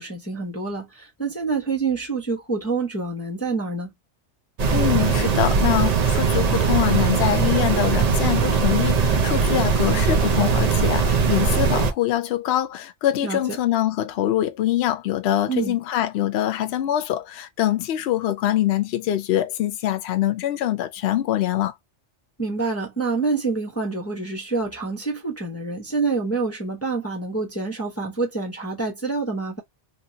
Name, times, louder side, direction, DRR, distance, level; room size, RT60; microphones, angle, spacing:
voice 1, 0.0-3.9 13.2-13.6 15.5-15.8 22.4-29.6, right 4 dB, 15° left, 0.7 m, -27 dB
sound 1, 4.6-11.9, right 5 dB, 45° right, 0.5 m, -20 dB
voice 2, 4.7-21.7, left 12 dB, 65° left, 0.8 m, -24 dB
3.0 x 2.9 x 2.6 m
omnidirectional pair, 1.2 m